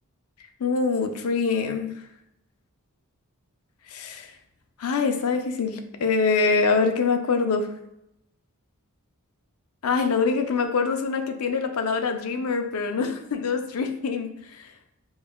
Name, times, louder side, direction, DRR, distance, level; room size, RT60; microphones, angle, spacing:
voice 1, 0.6-1.9 3.9-4.3 4.8-7.7 9.8-14.3 14.6-14.7, left 4 dB, 70° left, 6 dB, 0.5 m, -24 dB
5.2 x 2.3 x 2.2 m, 0.81 s
head